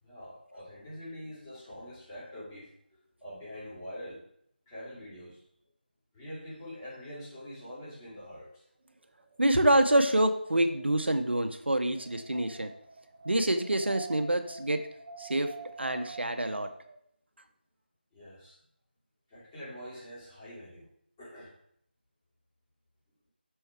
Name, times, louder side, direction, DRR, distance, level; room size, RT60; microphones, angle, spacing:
voice 1, 0.0-4.2 4.7-5.4 6.1-8.6 9.5-9.6 18.1-18.6 19.3-20.9 21.2-21.5, left 1 dB, 15° left, -10 dB, 2.8 m, -44 dB
Wind, 9.0-17.0, right 4 dB, 25° right, 0.6 m, -48 dB
voice 2, 9.4-12.7 13.2-14.8 15.2-15.5 15.8-16.7, right 1 dB, 85° right, 7 dB, 0.8 m, -26 dB
6.4 x 4.6 x 4.6 m, 0.68 s
figure-of-eight pair, 165°, 6 cm